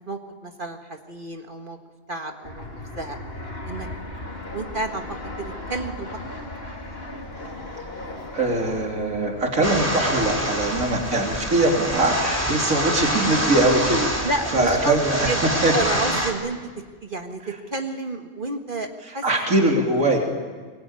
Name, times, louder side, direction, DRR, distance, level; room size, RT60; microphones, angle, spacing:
voice 1, 0.1-1.8 2.1-2.7 2.9-3.2 3.6-3.9 4.5-6.2 14.2-15.0 15.3-16.6 17.0-19.2 19.6-19.8, right 2 dB, 40° right, 4 dB, 1.8 m, -30 dB
Fixed-wing aircraft airplane, 2.4-11.1, left 2 dB, 45° left, 3.2 m, -37 dB
voice 2, 8.3-15.3 15.6-15.7 17.4-17.5 19.2-20.2, right 2 dB, 70° right, 1 dB, 3.8 m, -22 dB
sound 1, 9.6-16.3, right 1 dB, 10° right, 3.4 m, -26 dB
23.5 x 23.0 x 9.7 m, 1.5 s
omnidirectional pair, 1.4 m